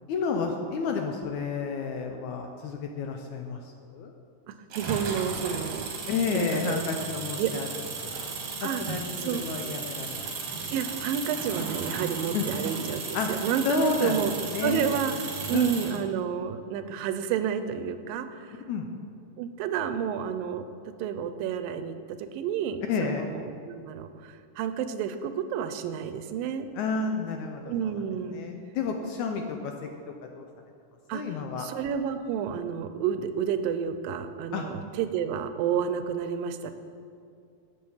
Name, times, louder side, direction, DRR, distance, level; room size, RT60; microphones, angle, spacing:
voice 1, 0.1-4.1 6.1-8.1 8.6-10.3 12.3-12.5 13.1-13.3 13.6-14.2 14.5-14.9 15.5-16.0 18.7-18.9 22.9-23.2 26.8-27.7 28.3-29.7 30.4-30.5 31.1-31.7 34.5-34.6, left 5 dB, 80° left, 3 dB, 1.8 m, -31 dB
sound 1, 4.7-16.0, right 4 dB, 55° right, 1.6 m, -35 dB
voice 2, 4.8-5.9 6.3-6.8 7.4-7.5 8.6-9.4 10.7-14.3 14.6-15.1 15.5-18.6 19.4-20.7 21.0-26.7 27.6-28.4 31.1-31.2 31.6-36.7, right 8 dB, 85° right, 10 dB, 2.4 m, -30 dB
12.0 x 7.5 x 5.6 m, 2.5 s
omnidirectional pair, 4.0 m